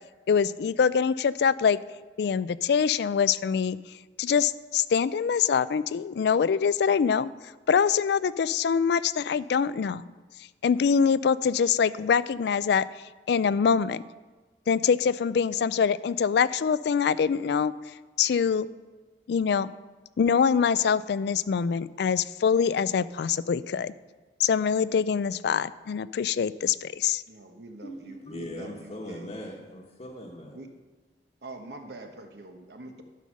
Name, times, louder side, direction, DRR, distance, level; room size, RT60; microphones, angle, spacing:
voice 1, 0.3-1.8 2.2-3.8 4.2-7.3 7.7-10.0 10.6-12.9 13.3-14.0 14.7-17.7 18.2-18.7 19.3-19.7 20.2-23.9 24.4-27.2, left 6 dB, 65° left, 17 dB, 0.3 m, -24 dB
voice 2, 27.3-29.3 30.5-30.7 31.4-33.0, right 2 dB, 65° right, 5 dB, 1.2 m, -44 dB
voice 3, 27.8-30.6, left 1 dB, 35° left, -3 dB, 1.1 m, -40 dB
12.0 x 5.5 x 6.3 m, 1.3 s
head